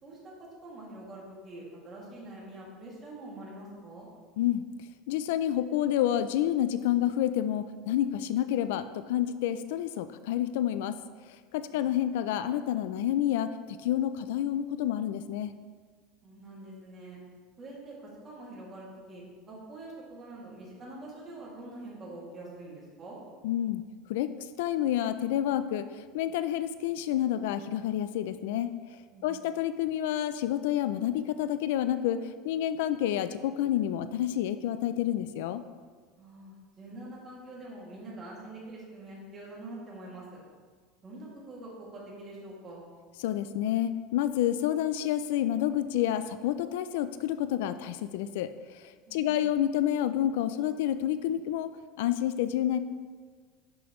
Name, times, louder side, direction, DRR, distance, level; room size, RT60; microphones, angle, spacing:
voice 1, 0.0-4.1 11.6-12.0 16.2-17.2 17.6-23.2 29.1-29.5 36.2-40.4 41.0-42.8 49.1-49.5, right 2 dB, 20° right, -5 dB, 2.3 m, -45 dB
voice 2, 5.1-10.9 11.5-15.5 23.4-23.8 24.1-24.3 24.6-28.7 29.2-35.6 43.2-51.7 52.0-52.8, left 11 dB, 80° left, 12 dB, 0.4 m, -29 dB
10.5 x 6.2 x 3.1 m, 1.6 s
supercardioid pair, 155°, 0 cm